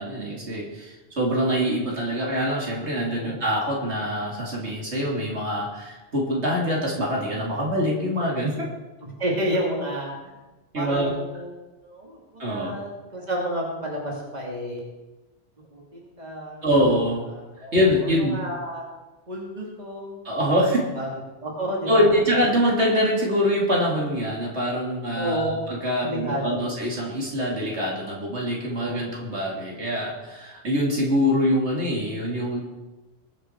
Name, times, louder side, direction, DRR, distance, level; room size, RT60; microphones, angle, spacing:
voice 1, 0.0-8.7 10.7-11.1 12.4-12.7 16.6-17.3 17.6-18.4 20.2-20.8 21.9-32.6, equal, 65° right, -3 dB, 3.1 m, -24 dB
voice 2, 3.1-3.4 9.0-10.3 10.7-11.5 11.8-14.9 15.7-16.6 17.3-18.8 19.3-20.2 20.9-21.1 21.4-22.1 25.1-25.6 26.0-26.6 28.7-29.1, right 1 dB, 35° right, -2 dB, 2.8 m, -31 dB
21.5 x 7.8 x 4.7 m, 1.1 s
omnidirectional pair, 1.2 m